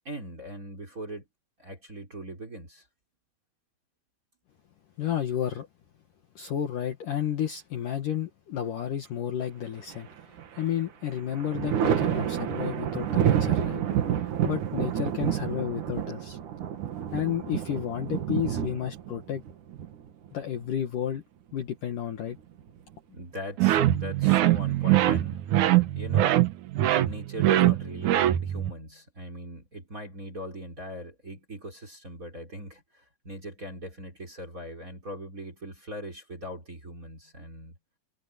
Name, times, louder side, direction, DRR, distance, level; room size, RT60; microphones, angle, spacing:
voice 1, 0.0-1.3 1.6-2.9 23.1-25.6 25.9-26.4 26.9-37.7, equal, 20° right, 3.4 m, -40 dB
voice 2, 5.0-5.7 6.4-13.8 14.1-16.4 17.1-19.4 20.3-21.2 21.5-22.4, left 10 dB, 60° left, 2.6 m, -32 dB
Thunder, 9.9-10.7 11.0-20.6 22.1-22.9, right 9 dB, 55° right, 2.6 m, -29 dB
sound 1, 23.6-28.7, right 14 dB, 85° right, 1.7 m, -22 dB
omnidirectional pair, 5.2 m